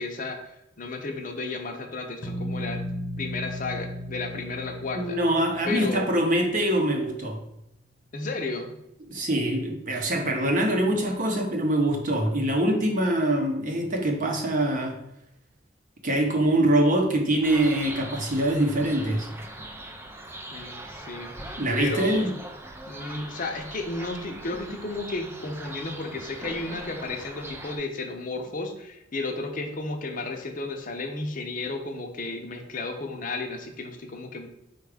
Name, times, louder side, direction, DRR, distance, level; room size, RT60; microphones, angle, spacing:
voice 1, 0.0-2.8 3.2-5.2 5.7-6.1 8.1-8.8 20.5-22.3 22.9-34.5, left 3 dB, 45° left, 3 dB, 0.6 m, -33 dB
sound 1, 2.2-7.1, equal, 80° left, 0.9 m, -36 dB
voice 2, 4.9-7.4 9.1-15.0 16.0-19.3 21.6-22.3, right 1 dB, 45° right, 2 dB, 0.7 m, -24 dB
sound 2, 17.4-27.8, right 1 dB, 15° right, 0.4 m, -41 dB
4.7 x 2.3 x 4.8 m, 0.80 s
head